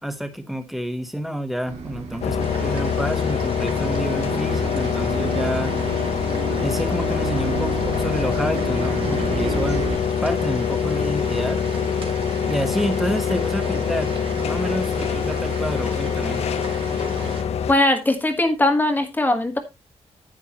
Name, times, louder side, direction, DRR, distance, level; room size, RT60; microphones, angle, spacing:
voice 1, 0.0-5.8 6.6-9.9 10.2-11.6 12.5-16.4, equal, ahead, 1.2 m, -29 dB
Bus, 1.7-10.0, right 5 dB, 75° right, 2.2 m, -32 dB
sound 1, 2.2-17.7, left 7 dB, 65° left, 0.8 m, -24 dB
sound 2, 2.4-17.4, right 4 dB, 50° right, 2.3 m, -36 dB
voice 2, 17.7-19.6, left 1 dB, 15° left, 1.3 m, -20 dB
10.0 x 9.2 x 2.9 m
wide cardioid pair, 155°, 11 cm